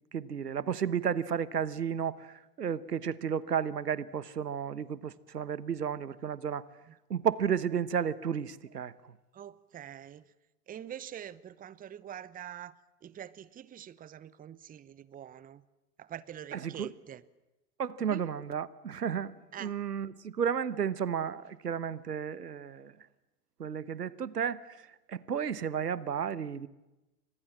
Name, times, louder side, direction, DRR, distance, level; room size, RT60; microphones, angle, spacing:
voice 1, 0.1-6.7 7.1-9.1 16.5-16.9 17.8-19.3 19.6-22.9 23.6-26.7, right 7 dB, 85° right, 18 dB, 1.2 m, -33 dB
voice 2, 9.3-10.2 10.7-15.6 16.0-17.2 18.1-18.3 19.5-19.7, right 10 dB, 20° right, 20 dB, 0.9 m, -45 dB
29.5 x 25.5 x 7.5 m, 1.0 s
figure-of-eight pair, 90°, 46 cm